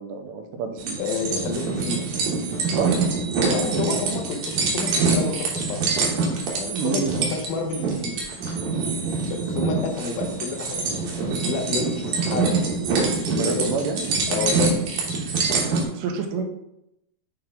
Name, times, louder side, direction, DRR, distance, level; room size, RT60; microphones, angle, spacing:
voice 1, 0.0-1.0 2.7-3.0 3.6-3.8 6.7-7.2 13.3-14.1 15.5-16.4, right 5 dB, 85° right, 4 dB, 2.9 m, -28 dB
sound 1, 0.8-15.8, right 4 dB, 65° right, 2.1 m, -25 dB
voice 2, 1.0-2.0 3.5-5.8 6.5-8.2 8.8-9.0 9.2-13.7 14.3-14.7, left 5 dB, 80° left, 3 dB, 2.4 m, -30 dB
8.6 x 3.4 x 3.6 m, 0.83 s
omnidirectional pair, 4.7 m